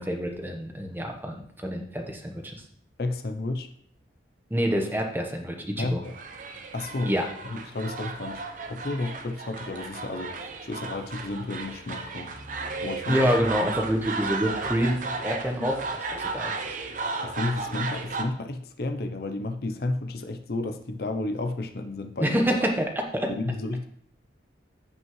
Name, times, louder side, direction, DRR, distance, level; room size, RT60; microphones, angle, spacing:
voice 1, 0.0-2.6 4.5-6.0 7.1-7.2 13.1-15.8 16.2-16.8 22.2-23.3, equal, 10° right, 3 dB, 1.0 m, -27 dB
voice 2, 3.0-3.7 5.8-6.1 6.7-7.1 7.4-8.4 8.7-12.3 12.8-13.3 15.6-15.7 17.2-22.4 23.3-23.9, left 2 dB, 55° left, 8 dB, 0.6 m, -32 dB
sound 1, 6.0-18.2, right 3 dB, 45° right, 0.8 m, -34 dB
15.0 x 5.3 x 3.2 m, 0.64 s
head